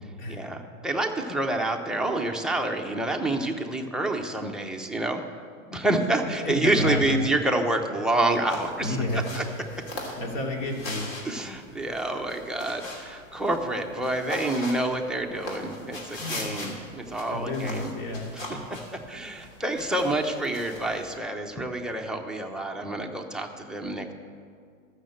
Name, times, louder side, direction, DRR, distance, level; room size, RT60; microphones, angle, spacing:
voice 1, 0.3-5.2 5.7-9.0 9.3-9.4 11.2-17.9 18.5-18.6 19.1-24.1, right 2 dB, ahead, 1 dB, 0.4 m, -28 dB
voice 2, 6.4-7.2 8.8-9.2 10.2-11.1 16.2-16.6 17.3-18.3, left 2 dB, 65° left, 0 dB, 2.8 m, -30 dB
sound 1, 8.3-21.1, left 1 dB, 50° left, 3.2 m, -40 dB
13.5 x 6.4 x 7.6 m, 2.1 s
hypercardioid pair, 135°, 40 cm